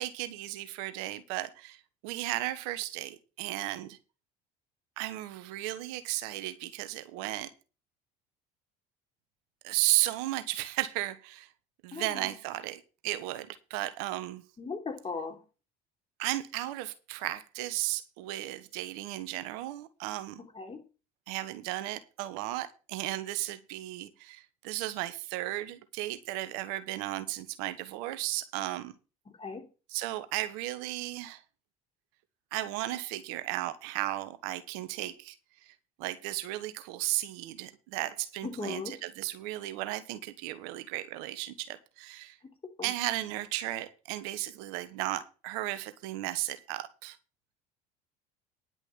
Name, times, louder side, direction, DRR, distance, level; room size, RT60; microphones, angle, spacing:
voice 1, 0.0-4.0 5.0-7.5 9.6-11.5 11.8-14.4 16.2-20.4 21.3-28.9 29.9-31.4 32.5-35.3 35.6-42.4 42.8-47.2, right 16 dB, 75° right, 1.3 m, -35 dB
voice 2, 11.9-12.3 14.6-15.4 20.5-20.8 29.4-29.6 38.4-38.9 42.8-42.9, left 4 dB, 30° left, 3.5 m, -37 dB
10.5 x 6.2 x 7.4 m
hypercardioid pair, 75°, 20 cm